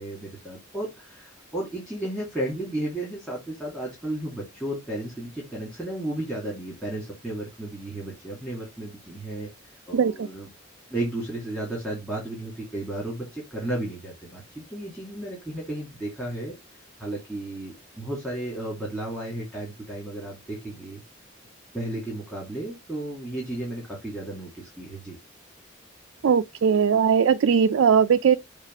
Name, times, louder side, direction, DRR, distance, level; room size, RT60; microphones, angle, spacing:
voice 1, 0.0-9.5 9.9-10.5 10.9-21.0 21.7-25.2, right 1 dB, 5° left, 2.3 m, -33 dB
voice 2, 9.9-10.3 26.2-28.4, right 7 dB, 75° right, 0.4 m, -19 dB
7.2 x 2.5 x 5.3 m
head